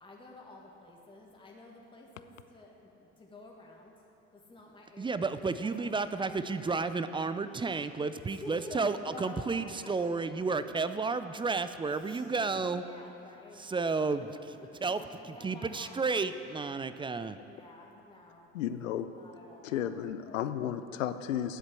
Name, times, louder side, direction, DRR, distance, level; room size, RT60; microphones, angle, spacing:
voice 1, 0.0-3.9 4.3-6.9 8.3-9.5 10.6-10.9 12.1-12.4 12.7-13.6 14.6-16.0 17.4-18.5 19.0-19.9, left 2 dB, 15° left, -2 dB, 1.6 m, -50 dB
voice 2, 5.0-12.8 13.6-17.4, right 4 dB, 15° right, 12 dB, 0.4 m, -32 dB
voice 3, 18.5-19.1 19.6-21.6, left 10 dB, 80° left, 12 dB, 0.6 m, -33 dB
9.9 x 8.2 x 7.5 m, 2.9 s
hypercardioid pair, 60°, 38 cm